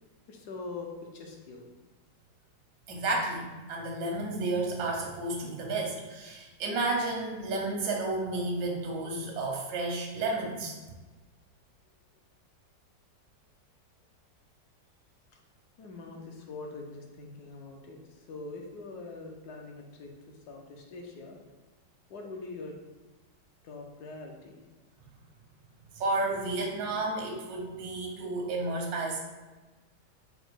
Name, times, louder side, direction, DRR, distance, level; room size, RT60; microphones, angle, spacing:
voice 1, 0.3-1.7 15.8-21.4 22.1-22.7 23.6-24.6, left 3 dB, 70° left, 1 dB, 1.1 m, -43 dB
voice 2, 2.9-10.8 25.9-29.2, right 2 dB, 85° right, 0 dB, 1.6 m, -32 dB
5.1 x 2.1 x 4.6 m, 1.2 s
omnidirectional pair, 1.9 m